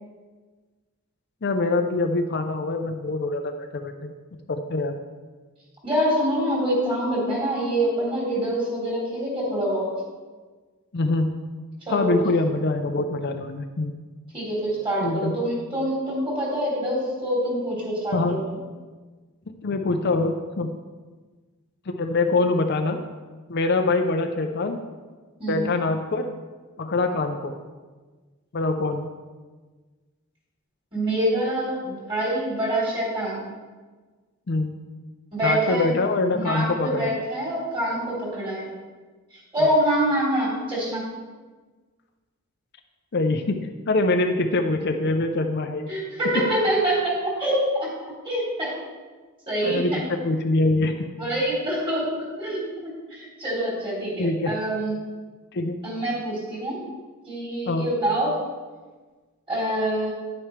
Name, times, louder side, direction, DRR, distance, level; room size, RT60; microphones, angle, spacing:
voice 1, 1.4-4.1 4.5-5.0 10.9-11.3 11.9-13.9 15.0-15.4 18.1-18.4 19.6-20.7 21.9-23.0 23.5-24.8 25.5-26.3 26.8-27.5 28.5-29.1 34.5-34.7 35.4-37.1 39.6-39.7 43.1-45.9 46.3-46.4 49.6-51.1 54.2-54.6 55.5-55.8 57.7-57.9, left 2 dB, 50° left, 5 dB, 0.5 m, -24 dB
voice 2, 5.8-9.9 11.8-12.1 14.3-18.4 25.4-25.7 30.9-33.4 35.3-36.0 36.3-38.7 39.5-41.0 45.9-47.9 48.2-48.7 49.5-50.0 51.2-54.9 55.8-56.9 57.3-58.4 59.5-60.1, right 1 dB, 25° right, -6 dB, 3.4 m, -25 dB
10.5 x 9.0 x 3.2 m, 1.4 s
head